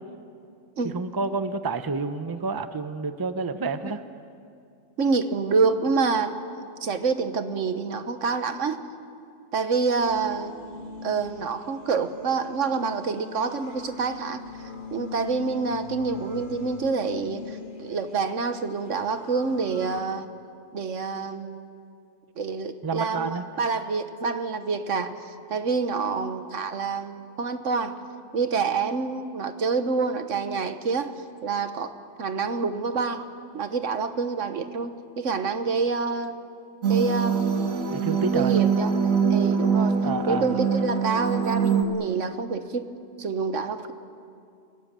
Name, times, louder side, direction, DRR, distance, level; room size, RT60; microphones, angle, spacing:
voice 1, 0.8-4.0 22.8-23.4 37.9-38.6 40.0-40.5, right 4 dB, 20° right, 10 dB, 0.7 m, -29 dB
voice 2, 5.0-6.3 6.8-8.8 9.5-10.5 11.0-14.4 14.9-20.3 20.7-21.7 22.4-27.9 28.3-31.1 31.4-33.2 33.5-36.4 36.9-37.9 38.3-38.9 39.3-40.0 40.3-42.9 43.2-43.9, right 4 dB, 70° right, 10 dB, 1.5 m, -27 dB
sound 1, 10.0-20.0, left 5 dB, 40° left, 1.5 m, -42 dB
sound 2, 36.8-41.8, right 6 dB, 85° right, 2.1 m, -23 dB
29.0 x 18.0 x 7.5 m, 2.5 s
omnidirectional pair, 1.3 m